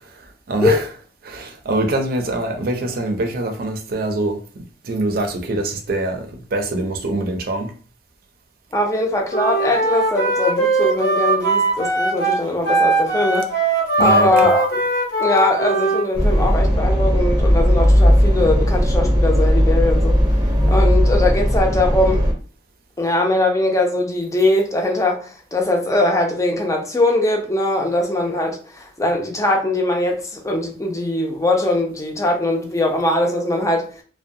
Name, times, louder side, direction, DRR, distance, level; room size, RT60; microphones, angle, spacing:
voice 1, 0.2-0.8 1.2-4.4 4.8-7.7 14.0-14.5, right 2 dB, 60° right, 0.5 m, -24 dB
voice 2, 8.7-13.5 14.0-14.8 15.2-20.2 20.7-22.3 23.0-33.9, left 1 dB, 20° left, 0.5 m, -21 dB
Wind instrument woodwind instrument, 9.3-16.0, right 2 dB, 90° left, 0.8 m, -20 dB
sound 1, 16.1-22.3, equal, 25° right, 0.7 m, -16 dB
2.6 x 2.2 x 2.6 m
head